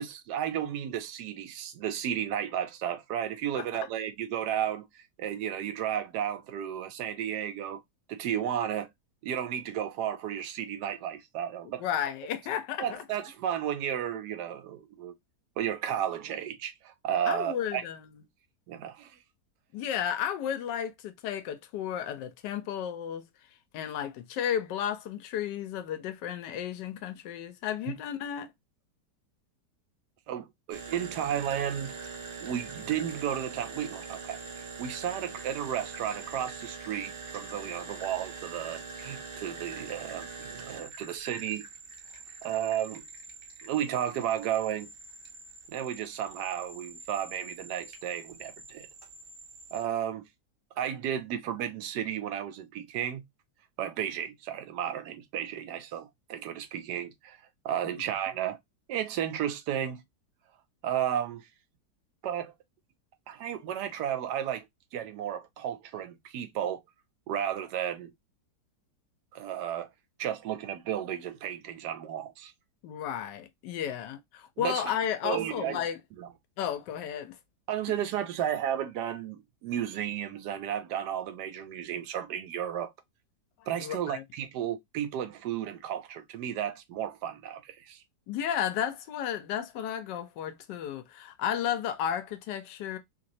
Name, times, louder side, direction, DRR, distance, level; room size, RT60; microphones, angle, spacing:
voice 1, 0.0-7.8 8.1-8.9 9.2-11.8 12.8-15.1 15.6-17.8 18.7-19.1 30.3-31.9 32.4-34.4 34.8-41.6 42.4-43.0 43.6-44.9 45.7-48.9 49.7-50.3 50.8-53.2 53.8-57.4 57.6-58.6 58.9-60.0 60.8-61.5 62.2-62.5 63.3-64.7 64.9-66.8 67.3-68.1 69.3-69.9 70.2-72.5 74.6-74.9 75.2-75.8 76.2-76.3 77.7-82.9 83.7-88.0, right 10 dB, 80° right, 1.2 m, -33 dB
voice 2, 11.8-13.0 17.3-18.1 19.7-23.2 23.7-28.5 57.9-58.0 72.8-76.0 76.6-77.4 83.8-84.2 88.3-93.0, left 9 dB, 85° left, 1.3 m, -33 dB
sound 1, 30.7-49.8, right 4 dB, 55° right, 0.6 m, -44 dB
3.2 x 2.9 x 2.6 m
omnidirectional pair, 1.8 m